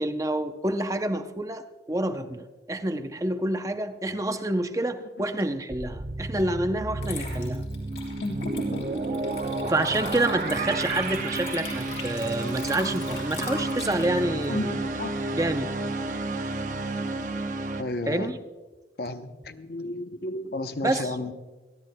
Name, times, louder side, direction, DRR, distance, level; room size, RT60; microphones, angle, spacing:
voice 1, 0.0-7.7 9.7-14.7 15.3-15.7 18.1-18.4 20.8-21.2, right 1 dB, 20° right, 8 dB, 0.5 m, -28 dB
sound 1, 5.7-17.8, right 2 dB, 45° right, 0.8 m, -31 dB
Water / Liquid, 6.4-6.6 7.0-15.5, left 4 dB, 75° left, 5.1 m, -40 dB
voice 2, 14.5-15.1 17.8-18.3 19.0-21.3, left 1 dB, 55° left, 8 dB, 0.7 m, -32 dB
28.0 x 12.5 x 2.2 m, 1.3 s
head